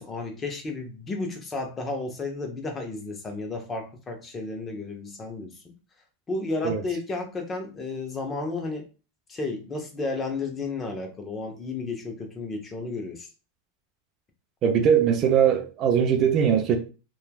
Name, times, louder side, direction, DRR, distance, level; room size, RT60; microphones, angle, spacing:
voice 1, 0.0-5.6 6.3-8.9 9.3-13.3, left 3 dB, 25° left, 0.7 m, -32 dB
voice 2, 14.6-16.8, right 8 dB, 40° right, 0.5 m, -21 dB
3.1 x 2.3 x 2.2 m
supercardioid pair, 120°, 0 cm